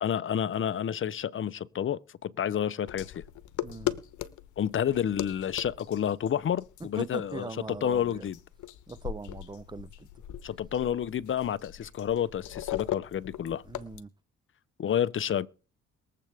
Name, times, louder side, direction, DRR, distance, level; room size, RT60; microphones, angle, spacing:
voice 1, 0.0-3.1 4.6-8.4 10.4-13.6 14.8-15.5, left 9 dB, 40° left, 0.6 m, -30 dB
sound 1, 2.9-14.0, left 13 dB, 80° left, 0.9 m, -39 dB
voice 2, 3.6-3.9 6.8-8.3 8.9-10.1 13.7-14.1, right 3 dB, 15° right, 0.7 m, -40 dB
22.5 x 7.7 x 3.4 m
cardioid pair, 90°, 30 cm